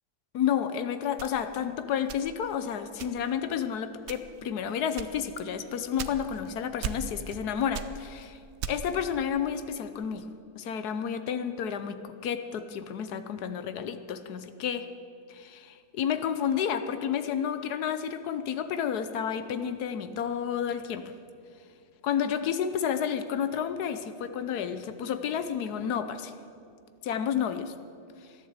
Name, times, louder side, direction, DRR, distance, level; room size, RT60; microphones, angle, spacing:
voice 1, 0.3-8.4 8.7-10.3 10.6-14.9 15.3-21.1 22.0-26.3 27.0-27.7, left 8 dB, 75° left, 10 dB, 1.3 m, -31 dB
sound 1, 1.2-2.6 3.0-3.4 4.0-4.5 5.0-6.5 6.8-7.4 7.7-9.0, right 8 dB, 60° right, 0.7 m, -38 dB
13.0 x 11.0 x 8.0 m, 2.4 s
omnidirectional pair, 1.7 m